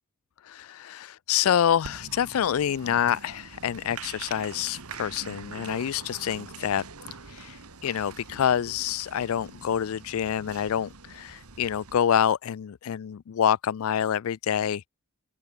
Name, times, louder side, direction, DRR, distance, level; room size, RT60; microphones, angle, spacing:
voice 1, 0.4-6.8 7.3-14.9, left 9 dB, 70° left, 0.4 m, -27 dB
Applause, 1.8-12.0, right 4 dB, 85° right, 2.2 m, -44 dB
open air
head